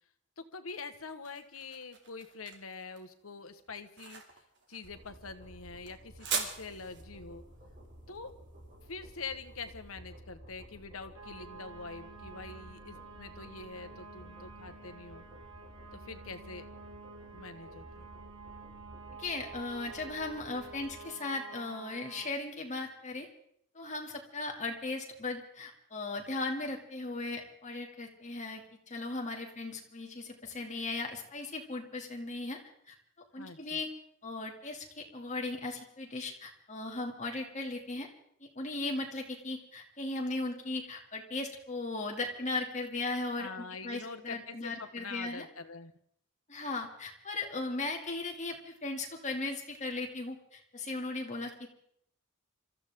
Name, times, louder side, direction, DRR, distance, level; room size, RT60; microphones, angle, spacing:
voice 1, 0.4-4.2 4.7-7.4 8.1-8.3 8.9-15.2 15.9-16.7 17.3-18.1 33.4-33.8 43.4-45.9, left 4 dB, 80° left, 9 dB, 1.4 m, -45 dB
sound 1, 0.7-9.8, right 5 dB, 60° right, 2.8 m, -42 dB
sound 2, 4.8-21.0, equal, 40° right, 7.5 m, -53 dB
sound 3, 11.1-22.3, right 4 dB, 85° right, 1.7 m, -50 dB
voice 2, 19.2-23.3 23.7-32.6 32.9-33.0 33.3-33.9 34.2-38.1 38.4-45.4 46.5-51.8, left 2 dB, 35° left, 1 dB, 2.6 m, -37 dB
27.0 x 14.5 x 3.7 m, 0.69 s
head